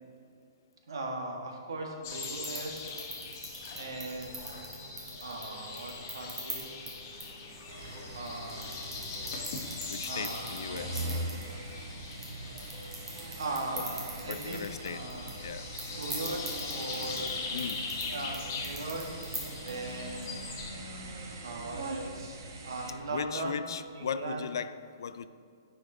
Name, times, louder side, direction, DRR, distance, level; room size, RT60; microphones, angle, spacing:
voice 1, 0.9-2.9 3.7-4.5 5.2-6.9 8.1-8.7 10.0-11.0 13.4-15.3 16.0-16.4 16.7-17.4 17.9-19.1 19.4-20.6 21.4-23.6 23.9-24.5, right 2 dB, 80° right, 1 dB, 1.4 m, -39 dB
sound 1, 2.0-20.7, left 4 dB, 35° left, 1.0 m, -41 dB
sound 2, 2.2-20.6, right 2 dB, 10° right, 1.0 m, -45 dB
sound 3, 7.7-22.9, right 2 dB, 50° right, 1.1 m, -42 dB
voice 2, 9.9-11.1 13.8-13.9 14.3-15.0 15.4-15.7 17.5-17.8 23.1-25.3, left 6 dB, 70° left, 14 dB, 0.3 m, -37 dB
9.6 x 5.2 x 3.8 m, 2.4 s
hypercardioid pair, 170°, 2 cm